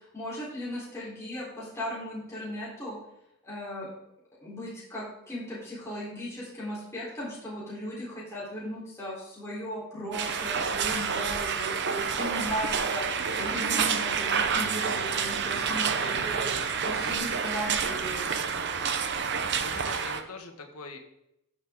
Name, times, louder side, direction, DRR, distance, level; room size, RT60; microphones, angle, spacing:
voice 1, 0.1-3.0 3.4-3.9 4.4-13.0 13.4-18.3, equal, 15° left, -8 dB, 3.6 m, -37 dB
sound 1, 10.1-20.2, right 6 dB, 50° right, 0.8 m, -29 dB
voice 2, 19.6-21.0, left 3 dB, 80° left, 4 dB, 1.6 m, -42 dB
14.0 x 6.6 x 3.7 m, 0.82 s
head